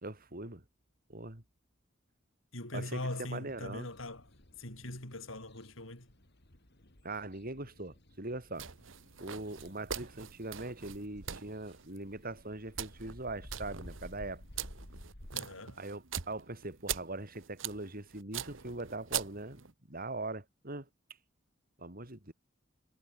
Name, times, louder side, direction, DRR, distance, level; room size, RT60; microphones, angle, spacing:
voice 1, 0.0-0.6 1.1-1.4 2.7-3.9 7.0-8.7 9.2-14.4 15.8-20.9 21.8-22.3, right 2 dB, 45° right, 4.5 m, -41 dB
voice 2, 2.5-4.3 4.6-6.1 15.3-15.8, left 1 dB, 80° left, 6.7 m, -41 dB
sound 1, 3.5-15.3, left 1 dB, 55° left, 3.7 m, -54 dB
sound 2, 8.5-19.7, right 9 dB, 70° right, 1.3 m, -43 dB
head